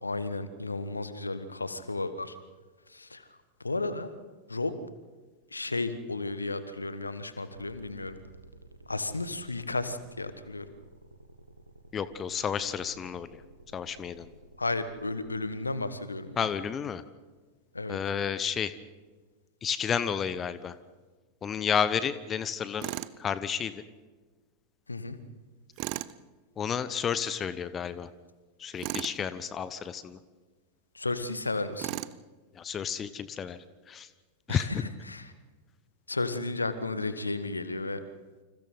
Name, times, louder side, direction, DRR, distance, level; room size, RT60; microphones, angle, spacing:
voice 1, 0.0-2.3 2.9-3.3 3.6-4.1 4.5-4.7 5.5-8.2 8.9-10.7 14.6-16.5 17.7-18.0 24.9-25.2 30.9-32.0 34.5-35.3 36.1-38.0, left 2 dB, 80° left, 12 dB, 1.4 m, -33 dB
sound 1, 7.5-15.5, right 2 dB, 85° right, 1.5 m, -53 dB
voice 2, 11.9-13.4 13.7-14.3 16.4-17.0 17.9-18.7 19.6-20.8 21.4-22.9 23.2-23.8 26.6-28.1 28.6-30.2 32.5-34.1 34.5-34.7, left 7 dB, 25° left, 15 dB, 0.9 m, -31 dB
Tools, 22.8-23.2 25.8-26.2 28.8-29.2 31.8-32.2, right 18 dB, 45° right, 0.7 m, -35 dB
29.0 x 26.5 x 4.0 m, 1.3 s
figure-of-eight pair, 90°, 0 cm